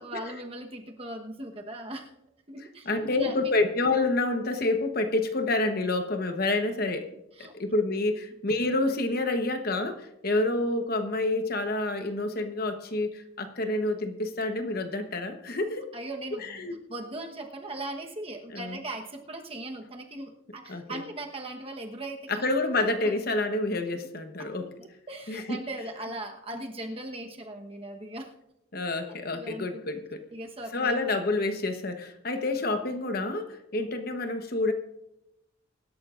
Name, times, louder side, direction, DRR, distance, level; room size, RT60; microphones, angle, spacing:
voice 1, 0.0-2.1 2.5-3.5 7.3-7.5 15.9-22.4 23.0-23.1 24.6-28.3 29.1-29.8 30.3-31.1, right 1 dB, 25° right, 3 dB, 1.1 m, -39 dB
voice 2, 2.9-7.1 7.4-15.9 16.4-16.8 18.5-18.8 20.7-21.0 22.3-24.7 25.3-25.6 28.7-30.2 30.7-34.7, left 2 dB, 45° left, 7 dB, 1.0 m, -28 dB
23.5 x 12.0 x 2.5 m, 0.87 s
head